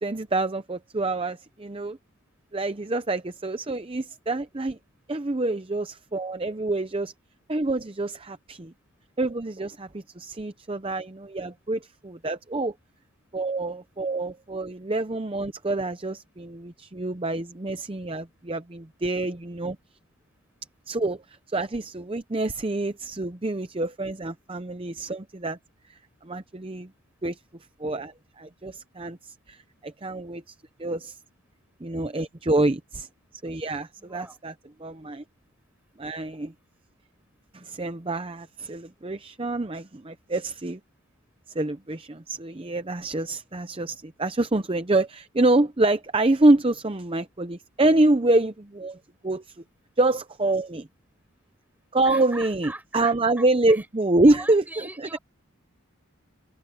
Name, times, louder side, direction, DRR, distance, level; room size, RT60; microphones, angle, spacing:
voice 1, 0.0-2.0 2.5-4.8 5.1-7.1 7.5-8.7 9.2-12.7 13.3-19.8 20.9-25.6 25.9-26.9 27.2-27.4 27.8-31.2 31.8-33.1 33.4-34.5 34.8-35.2 36.0-36.5 37.5-40.8 41.5-49.6 50.0-50.9 51.9-55.2, right 2 dB, 25° right, 0.7 m, -26 dB
voice 2, 34.0-34.4 52.0-53.9 54.2-55.2, right 1 dB, 10° right, 7.2 m, -41 dB
open air
head